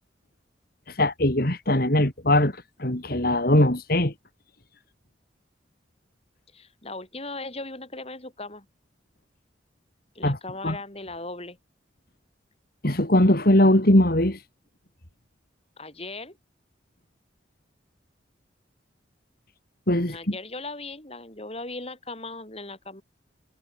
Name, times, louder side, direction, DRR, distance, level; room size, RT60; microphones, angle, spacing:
voice 1, 0.9-4.1 10.2-10.4 10.6-10.8 12.8-14.4 19.9-20.3, left 1 dB, 50° left, 3.3 m, -21 dB
voice 2, 6.5-8.7 10.1-11.6 15.8-16.4 20.1-23.0, left 2 dB, 30° left, 6.5 m, -38 dB
head